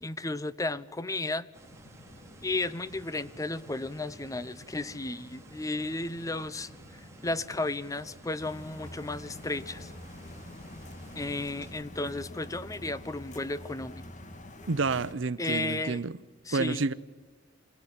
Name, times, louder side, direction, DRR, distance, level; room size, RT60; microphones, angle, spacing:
voice 1, 0.0-1.5 2.4-6.7 7.2-9.9 11.2-14.0 15.4-16.0 16.5-16.9, left 2 dB, 20° left, 0.7 m, -33 dB
sound 1, 1.5-11.7, right 1 dB, 15° right, 2.9 m, -53 dB
sound 2, 1.6-11.6, left 1 dB, 65° left, 3.4 m, -54 dB
sound 3, 8.4-15.1, left 1 dB, 40° left, 1.9 m, -46 dB
voice 2, 14.7-16.2 16.5-16.9, right 4 dB, 80° right, 0.7 m, -29 dB
27.5 x 17.5 x 9.9 m
head